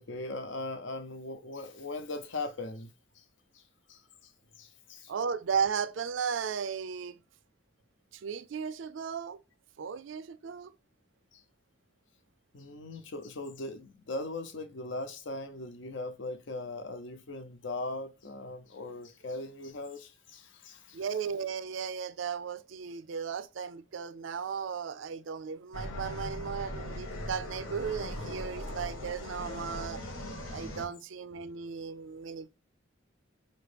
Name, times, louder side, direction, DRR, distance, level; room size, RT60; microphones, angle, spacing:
voice 1, 0.0-3.2 3.5-3.6 3.9-5.1 11.3-11.4 12.5-21.0, left 2 dB, 70° left, 0.7 m, -40 dB
voice 2, 5.1-7.2 8.1-9.4 9.8-10.7 20.9-30.0 30.5-32.5, right 6 dB, 75° right, 0.4 m, -35 dB
sound 1, 25.7-30.9, left 1 dB, 85° left, 1.2 m, -39 dB
5.3 x 2.9 x 3.3 m
head